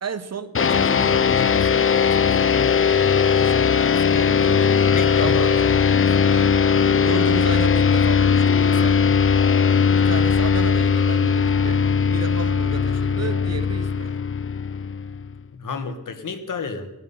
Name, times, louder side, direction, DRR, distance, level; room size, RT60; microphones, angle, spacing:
voice 1, 0.0-2.7 3.2-6.6 7.0-9.0 9.9-11.8 12.1-14.2, right 5 dB, 55° right, 12 dB, 1.0 m, -34 dB
sound 1, 0.5-15.4, left 6 dB, 45° left, 0.5 m, -19 dB
sound 2, 3.0-13.4, right 4 dB, 85° right, 2.3 m, -42 dB
voice 2, 4.0-4.6 4.9-5.5 15.5-16.9, left 4 dB, 85° left, 8 dB, 1.5 m, -31 dB
18.5 x 11.0 x 5.7 m, 1.0 s
wide cardioid pair, 95°, 31 cm